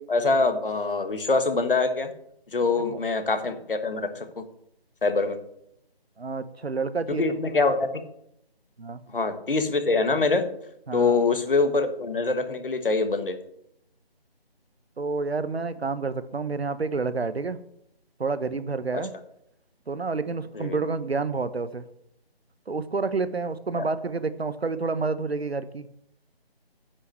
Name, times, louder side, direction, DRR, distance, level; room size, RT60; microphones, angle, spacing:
voice 1, 0.0-2.1 2.5-4.4 5.0-5.4 7.2-7.9 9.1-10.4 10.9-13.4 18.9-19.0 20.5-20.8 23.8-23.9, left 3 dB, 60° left, 9 dB, 1.5 m, -24 dB
voice 2, 6.2-7.4 8.8-9.0 10.9-11.2 15.0-17.6 18.2-19.1 19.9-21.8 22.7-25.9, right 4 dB, 80° right, 13 dB, 1.0 m, -29 dB
9.9 x 5.5 x 7.5 m, 0.75 s
figure-of-eight pair, 160°, 31 cm